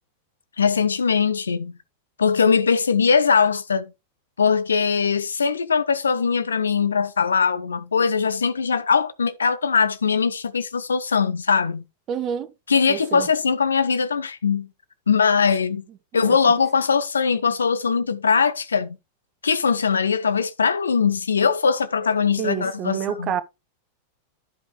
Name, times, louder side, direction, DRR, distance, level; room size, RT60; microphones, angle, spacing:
voice 1, 0.6-1.7 2.2-3.9 4.4-11.8 12.7-14.7 15.1-15.8 16.1-19.0 19.4-23.4, left 5 dB, 70° left, 0.7 m, -21 dB
voice 2, 12.1-12.5 12.9-13.3 16.1-16.4 22.4-23.4, right 8 dB, 35° right, 0.8 m, -28 dB
11.0 x 5.2 x 3.1 m
figure-of-eight pair, 90°, 0 cm